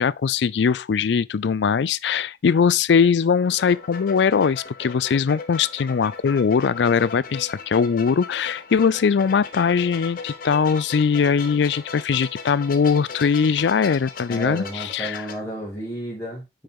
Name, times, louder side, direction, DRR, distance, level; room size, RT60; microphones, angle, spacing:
voice 1, 0.0-15.3, left 6 dB, 75° left, 0.4 m, -21 dB
sound 1, 3.4-15.4, left 5 dB, 50° left, 1.1 m, -38 dB
voice 2, 14.3-16.6, right 1 dB, 15° left, 2.2 m, -32 dB
8.8 x 4.5 x 3.6 m
head